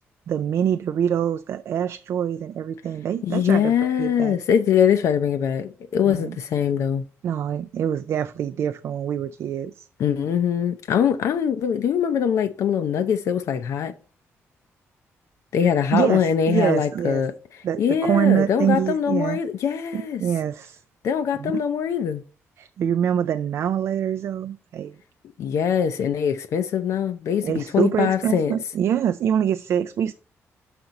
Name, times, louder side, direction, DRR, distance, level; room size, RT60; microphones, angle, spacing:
voice 1, 0.3-4.4 6.1-6.4 7.2-9.9 15.9-17.2 17.6-19.4 19.9-20.8 21.4-21.5 22.6-25.0 27.4-30.1, right 9 dB, 60° right, 0.3 m, -25 dB
voice 2, 3.2-7.0 10.0-13.9 15.5-17.3 17.8-20.2 21.0-22.2 25.4-28.5, left 8 dB, 75° left, 0.5 m, -22 dB
6.4 x 5.9 x 4.0 m
cardioid pair, 140°, 5 cm